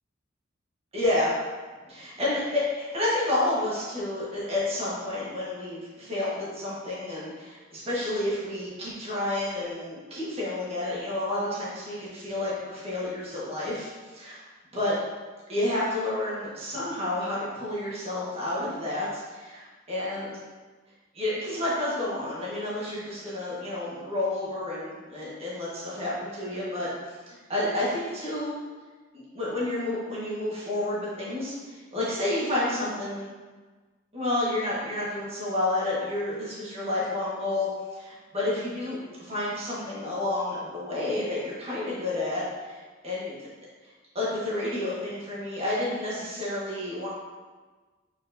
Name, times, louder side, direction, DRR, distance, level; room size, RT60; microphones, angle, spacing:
voice 1, 0.9-1.3 1.9-13.9 14.2-14.4 14.7-14.9 15.5-20.4 21.1-26.9 27.3-28.5 29.1-33.3 34.1-42.8 43.0-43.3 44.1-47.1, left 1 dB, 30° right, -8 dB, 1.4 m, -30 dB
4.5 x 4.1 x 2.6 m, 1.4 s
head